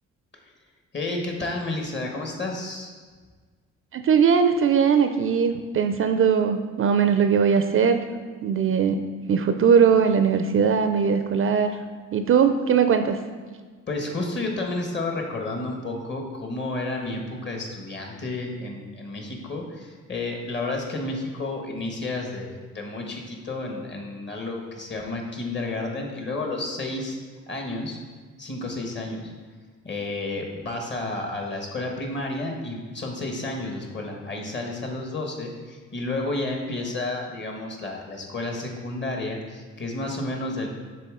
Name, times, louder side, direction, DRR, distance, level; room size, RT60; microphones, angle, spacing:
voice 1, 0.9-2.9 13.9-27.2 27.5-28.0 28.4-29.3 29.8-40.7, left 2 dB, 35° left, 1 dB, 1.2 m, -31 dB
voice 2, 3.9-8.0 8.4-9.0 9.3-11.8 12.1-13.2, right 6 dB, 45° right, 8 dB, 0.4 m, -20 dB
6.7 x 3.8 x 3.7 m, 1.5 s
cardioid pair, 90°, 30 cm